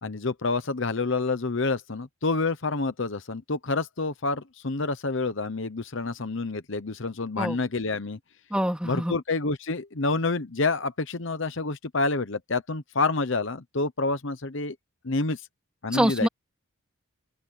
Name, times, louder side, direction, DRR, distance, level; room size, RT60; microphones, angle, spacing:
voice 1, 0.0-8.2 8.8-14.7 15.0-15.4 15.8-16.3, left 3 dB, 60° left, 1.0 m, -28 dB
voice 2, 8.5-9.2 15.9-16.3, equal, 5° right, 2.6 m, -25 dB
open air
head